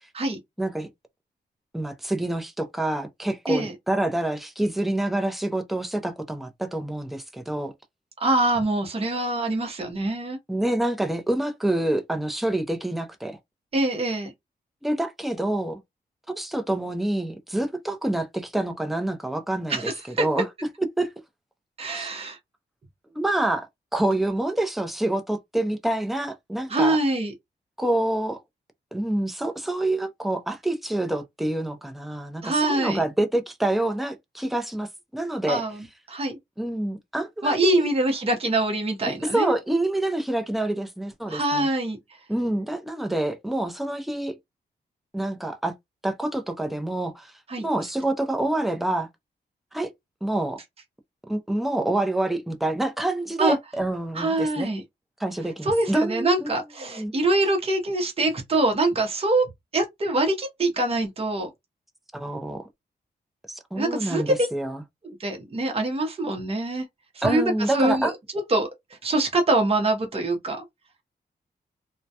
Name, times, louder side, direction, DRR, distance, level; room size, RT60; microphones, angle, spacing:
voice 1, 0.6-0.9 1.7-7.7 10.5-13.4 14.8-15.8 16.3-19.8 20.2-20.5 21.0-21.1 22.0-22.1 23.1-27.0 27.8-28.4 28.9-35.6 36.6-37.9 39.1-41.7 42.3-44.4 45.1-45.7 46.0-49.1 49.7-49.9 50.2-50.6 51.3-54.7 55.2-56.5 57.0-57.1 62.1-62.7 63.5-64.8 67.2-68.1, right 1 dB, ahead, 0.5 m, -27 dB
voice 2, 8.2-10.4 13.7-14.3 19.7-20.3 21.8-22.4 26.7-27.3 32.4-33.0 35.5-35.8 36.1-36.4 37.4-39.5 41.3-42.0 47.5-47.7 53.4-53.6 54.1-54.8 55.6-61.5 63.7-64.5 65.0-66.8 67.1-68.1 68.5-68.7 69.0-70.6, right 2 dB, 35° right, 0.8 m, -24 dB
2.2 x 2.1 x 2.7 m
cardioid pair, 80°, 18 cm